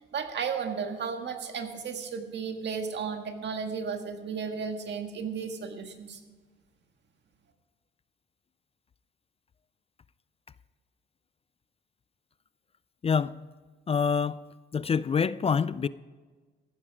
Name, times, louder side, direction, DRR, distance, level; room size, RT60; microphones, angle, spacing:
voice 1, 0.1-6.2, right 6 dB, 60° right, 1.8 m, -34 dB
voice 2, 13.0-13.4 13.9-14.5 14.7-15.9, left 6 dB, 30° left, 0.4 m, -26 dB
14.5 x 11.5 x 4.9 m
cardioid pair, 90°, 20 cm